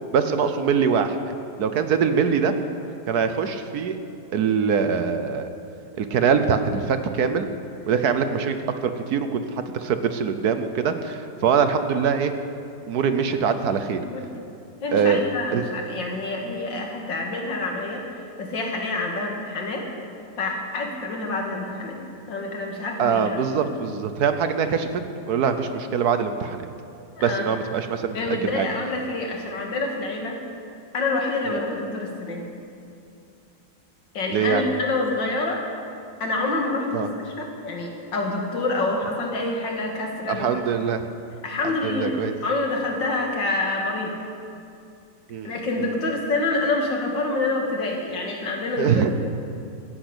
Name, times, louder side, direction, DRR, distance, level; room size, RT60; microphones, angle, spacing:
voice 1, 0.1-1.2 1.6-2.5 3.1-4.0 4.3-5.5 6.0-7.5 7.9-8.5 8.8-9.4 9.8-12.3 12.9-14.0 14.9-15.2 15.5-15.7 23.0-24.9 25.3-26.7 27.2-28.7 34.3-34.6 36.9-37.1 40.3-41.1 41.8-42.3 45.3-45.5 48.8-49.1, right 6 dB, 65° right, 9 dB, 1.3 m, -23 dB
voice 2, 14.0-14.4 14.8-19.9 20.4-22.0 22.3-23.6 27.2-27.4 28.1-30.4 30.9-32.4 34.1-35.6 36.2-40.6 41.4-44.2 45.4-49.1, left 2 dB, 85° left, 1 dB, 2.6 m, -27 dB
14.0 x 10.5 x 8.1 m, 2.5 s
omnidirectional pair, 2.0 m